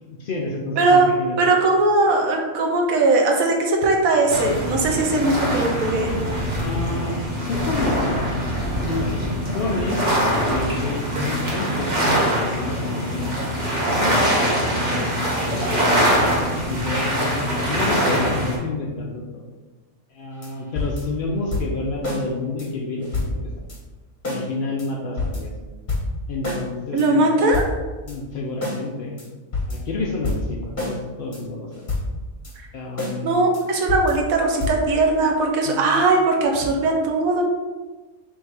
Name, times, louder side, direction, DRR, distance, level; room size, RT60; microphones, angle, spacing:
voice 1, 0.0-1.4 6.6-8.4 8.8-10.1 10.4-14.2 14.9-15.1 15.5-16.1 16.6-19.4 20.1-23.4 24.3-25.5 26.3-27.2 28.0-29.1 29.6-31.7 32.7-33.3 35.6-35.8, left 3 dB, 70° left, -1 dB, 0.5 m, -29 dB
voice 2, 0.8-1.1 1.4-6.1 14.9-15.5 26.9-27.6 33.2-37.4, right 2 dB, 80° right, 1 dB, 1.1 m, -19 dB
sound 1, 4.3-18.6, equal, 40° right, 0.8 m, -23 dB
sound 2, 20.4-20.5 20.7-21.2 21.5-22.2 22.6-22.7 23.0-23.8 24.2-24.4 24.8-24.9 25.2-25.6 25.9-26.7 27.0-27.1 27.4-28.1 28.6-28.8 29.2-29.3 29.5-29.9 30.2-31.0 31.3-31.4 31.7-32.5 33.0-33.2 33.5-33.6 33.9-34.3 34.6-34.9, left 2 dB, 35° left, 1.1 m, -27 dB
3.6 x 2.7 x 4.7 m, 1.3 s
omnidirectional pair, 1.5 m